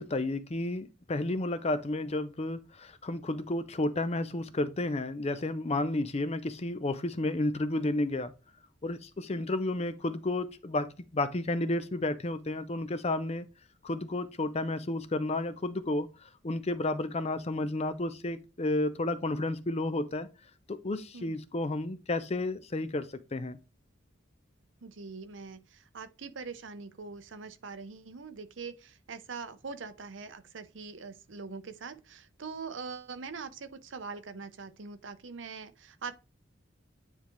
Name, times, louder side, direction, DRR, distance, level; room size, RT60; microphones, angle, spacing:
voice 1, 0.0-8.3 8.8-10.9 11.1-13.5 13.8-16.1 16.4-20.3 20.7-23.6, left 2 dB, 35° left, 0.6 m, -31 dB
voice 2, 24.8-36.1, right 5 dB, 70° right, 0.7 m, -43 dB
9.4 x 3.5 x 3.0 m
head